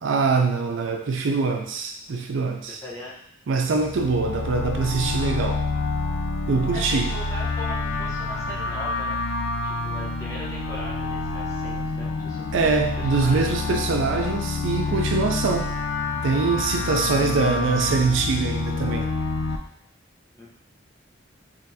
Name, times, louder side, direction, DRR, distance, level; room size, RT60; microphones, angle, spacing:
voice 1, 0.0-2.8 3.5-5.6 6.5-7.1 12.5-15.7 16.2-19.1, right 4 dB, 70° right, 4 dB, 0.4 m, -23 dB
voice 2, 2.8-3.2 6.7-9.3 9.6-13.5 20.3-20.5, left 1 dB, 15° left, -6 dB, 0.9 m, -39 dB
sound 1, 3.7-19.6, left 3 dB, 70° left, 0.4 m, -28 dB
3.8 x 3.2 x 2.7 m, 0.71 s
head